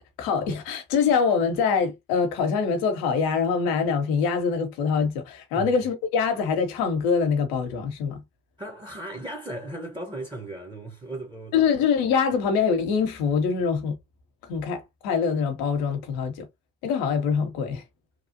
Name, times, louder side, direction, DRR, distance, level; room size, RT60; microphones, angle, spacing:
voice 1, 0.2-8.2 11.5-13.9 14.5-16.4 16.8-17.8, left 6 dB, 80° left, 0.9 m, -24 dB
voice 2, 8.6-11.7, right 2 dB, 15° right, 1.0 m, -36 dB
3.1 x 2.4 x 2.6 m
hypercardioid pair, 50°, 36 cm